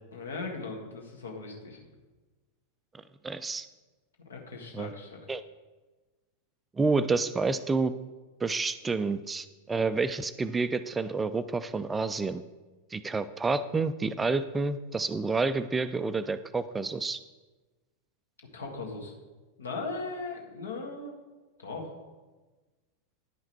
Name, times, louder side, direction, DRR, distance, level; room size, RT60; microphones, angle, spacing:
voice 1, 0.1-1.8 4.2-5.2 18.5-19.1 19.6-21.2 21.6-21.9, left 3 dB, 70° left, 1 dB, 1.7 m, -38 dB
voice 2, 3.2-3.7 4.7-4.9 5.3-5.4 6.8-7.9 8.4-12.4 12.9-17.2, right 4 dB, 15° right, 13 dB, 0.3 m, -29 dB
10.5 x 5.5 x 4.6 m, 1.2 s
figure-of-eight pair, 90°, 0 cm